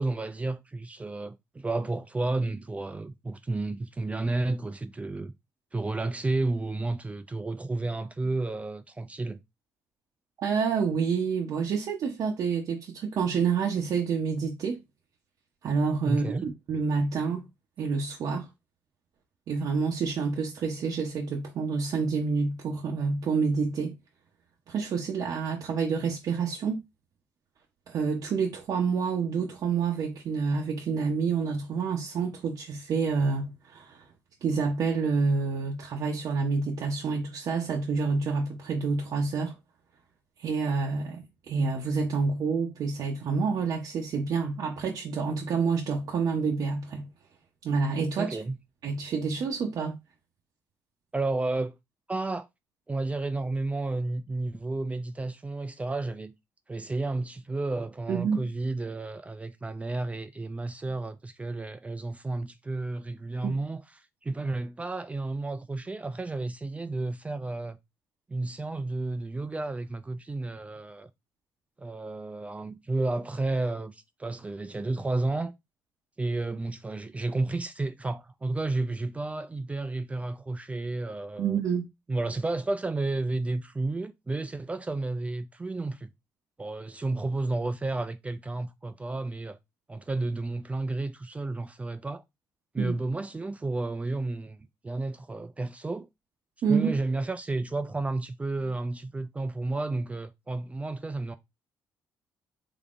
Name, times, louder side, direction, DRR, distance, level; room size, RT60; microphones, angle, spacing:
voice 1, 0.0-5.3 5.7-9.4 16.1-16.5 48.2-48.6 51.1-51.8 52.1-52.5 52.9-56.3 56.7-63.8 64.2-67.8 68.3-71.1 71.8-75.5 76.2-81.6 82.1-86.1 86.6-89.6 89.9-92.2 92.7-94.6 94.8-96.1 96.7-101.4, right 2 dB, 20° right, 0.4 m, -31 dB
voice 2, 10.4-14.8 15.6-17.4 17.8-18.5 19.5-23.9 24.7-26.8 27.9-34.0 34.4-39.6 40.4-47.1 47.6-48.4 48.8-49.9 58.1-58.4 63.4-63.5 81.4-81.8 92.8-92.9 96.6-96.9, right 5 dB, 65° right, 0.7 m, -28 dB
3.6 x 3.4 x 2.4 m
cardioid pair, 75°, 7 cm